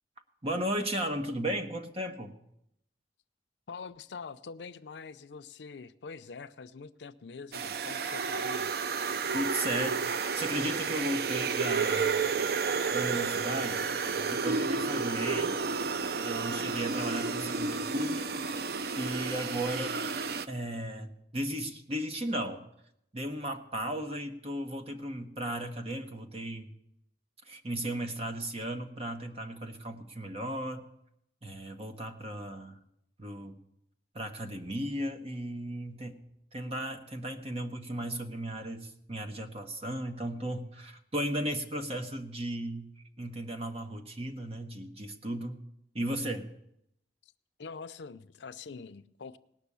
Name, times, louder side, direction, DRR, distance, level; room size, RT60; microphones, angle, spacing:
voice 1, 0.4-2.3 9.3-12.3 12.9-13.8 14.2-15.6 16.2-18.4 18.9-20.0 20.5-22.6 23.1-26.7 27.4-30.9 31.4-32.8 33.2-33.6 34.1-36.2 36.5-45.6 45.9-46.5, right 1 dB, 35° right, 6 dB, 1.1 m, -35 dB
voice 2, 3.7-8.9 47.6-49.4, left 5 dB, 85° left, 13 dB, 0.5 m, -44 dB
sound 1, 7.5-20.5, right 5 dB, 60° right, 0.5 m, -31 dB
18.5 x 6.1 x 8.4 m, 0.78 s
head